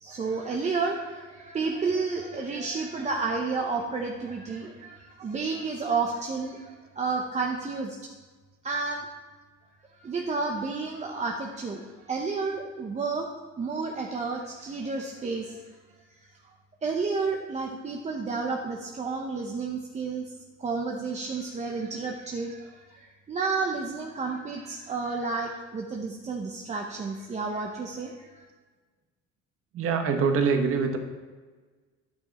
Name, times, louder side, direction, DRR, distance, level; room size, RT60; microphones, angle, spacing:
voice 1, 0.0-8.0 8.6-9.1 10.0-13.3 13.6-15.6 16.1-16.3 16.8-20.3 20.6-28.4, right 4 dB, 25° right, 1 dB, 0.8 m, -31 dB
voice 2, 29.7-31.0, right 5 dB, 45° right, 5 dB, 1.3 m, -25 dB
11.5 x 8.8 x 4.2 m, 1.4 s
cardioid pair, 170°, 30 cm